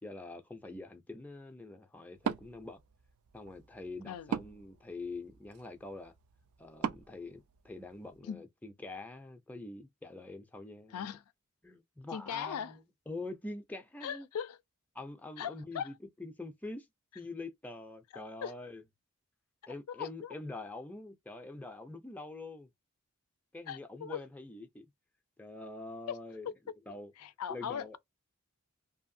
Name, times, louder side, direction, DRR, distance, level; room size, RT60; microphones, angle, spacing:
voice 1, 0.0-2.8 3.3-6.1 6.6-11.1 11.6-14.3 14.9-15.9 16.2-16.9 17.1-18.8 19.7-22.7 23.5-24.9 25.4-26.5 26.9-27.1 27.5-28.0, left 2 dB, 5° left, 0.4 m, -45 dB
Wood, 2.1-8.2, right 6 dB, 70° right, 0.3 m, -42 dB
voice 2, 10.9-11.2 12.1-12.8 14.0-14.6 15.4-15.9 18.1-18.5 19.9-20.3 23.7-24.2 26.1-26.2 27.2-28.0, left 8 dB, 90° left, 0.4 m, -39 dB
2.7 x 2.5 x 2.6 m
head